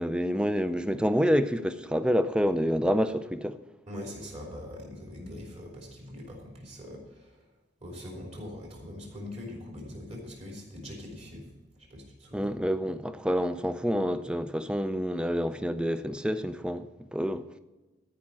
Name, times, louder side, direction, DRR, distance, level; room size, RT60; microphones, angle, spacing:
voice 1, 0.0-3.6 12.3-16.9 17.1-17.5, equal, 5° right, 0.4 m, -27 dB
voice 2, 3.9-7.4 7.8-11.5 11.8-12.6, left 1 dB, 35° right, 3.2 m, -42 dB
13.5 x 5.4 x 7.4 m
head